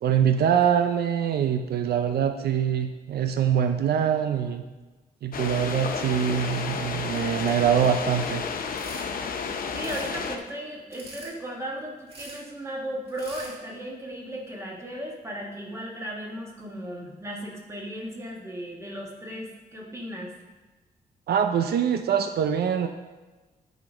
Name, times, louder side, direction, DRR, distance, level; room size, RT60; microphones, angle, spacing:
voice 1, 0.0-4.6 5.2-8.4 21.3-22.9, right 8 dB, 80° right, 7 dB, 0.5 m, -24 dB
sound 1, 5.3-10.4, left 5 dB, 65° left, 0.7 m, -31 dB
sound 2, 8.8-9.1 9.7-10.1 10.9-11.3 12.1-12.4 13.1-13.5, right 1 dB, 40° right, 1.9 m, -44 dB
voice 2, 9.7-20.3, right 1 dB, 15° right, -2 dB, 1.4 m, -36 dB
10.5 x 4.1 x 5.0 m, 1.2 s
wide cardioid pair, 160°, 16 cm